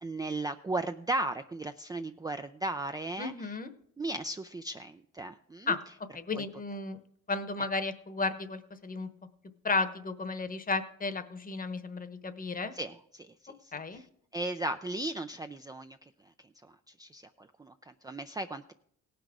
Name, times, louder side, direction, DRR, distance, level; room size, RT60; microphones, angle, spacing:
voice 1, 0.0-3.3 4.0-5.8 6.3-6.4 12.7-14.1 14.3-16.0 17.0-18.7, right 2 dB, 15° right, 7 dB, 0.4 m, -36 dB
voice 2, 3.2-3.7 5.7-5.8 6.1-7.0 7.3-9.1 9.6-12.7 13.7-14.0, left 3 dB, 30° left, 11 dB, 1.0 m, -33 dB
17.0 x 6.0 x 4.9 m, 0.69 s
cardioid pair, 90°, 30 cm